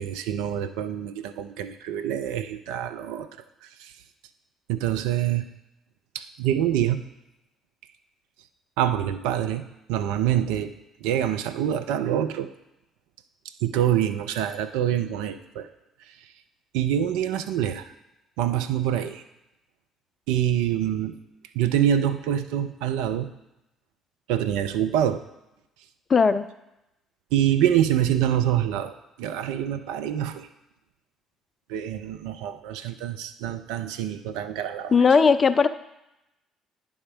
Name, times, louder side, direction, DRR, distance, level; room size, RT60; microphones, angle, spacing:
voice 1, 0.0-3.3 3.6-3.9 4.7-5.4 6.1-7.0 8.8-10.7 11.0-12.5 13.6-15.7 16.7-17.9 18.4-19.2 20.3-21.2 21.5-23.3 24.3-25.2 27.3-28.9 29.2-30.5 31.7-34.9, right 10 dB, 65° right, 9 dB, 0.4 m, -25 dB
voice 2, 26.1-26.4 34.9-35.7, left 5 dB, 35° left, 12 dB, 0.4 m, -17 dB
9.8 x 3.6 x 5.2 m, 0.92 s
figure-of-eight pair, 50°, 0 cm